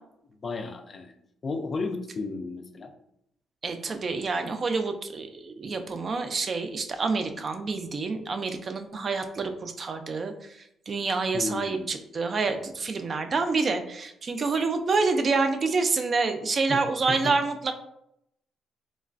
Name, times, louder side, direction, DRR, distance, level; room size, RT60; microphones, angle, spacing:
voice 1, 0.4-1.1 1.4-2.9 11.3-12.0 16.7-16.8 17.1-17.3, left 3 dB, 40° left, 7 dB, 0.3 m, -33 dB
voice 2, 3.6-10.6 10.9-17.7, right 4 dB, 45° right, 7 dB, 0.3 m, -27 dB
3.1 x 2.2 x 2.4 m, 0.77 s
cardioid pair, 90°, 0 cm